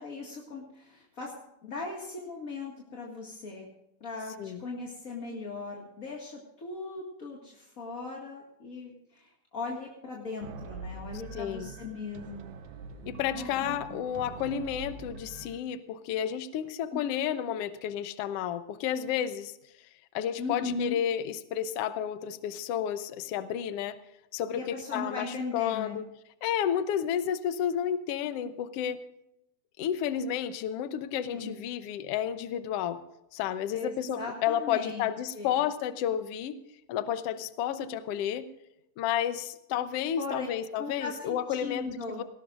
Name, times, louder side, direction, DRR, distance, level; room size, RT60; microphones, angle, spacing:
voice 1, 0.0-1.3 1.6-3.7 4.0-12.5 13.3-14.0 20.4-21.0 24.5-26.0 31.3-31.6 33.7-35.6 40.2-40.5 40.7-42.2, left 3 dB, 30° left, -2 dB, 1.7 m, -38 dB
sound 1, 10.4-15.6, right 5 dB, 70° right, 2.2 m, -44 dB
voice 2, 11.3-11.7 13.0-19.5 20.1-24.0 24.3-25.3 25.5-26.0 26.4-29.0 29.8-33.0 33.3-36.6 36.9-38.5 39.0-42.2, left 9 dB, 85° left, 11 dB, 1.3 m, -31 dB
19.0 x 18.0 x 2.5 m, 0.85 s
omnidirectional pair, 4.0 m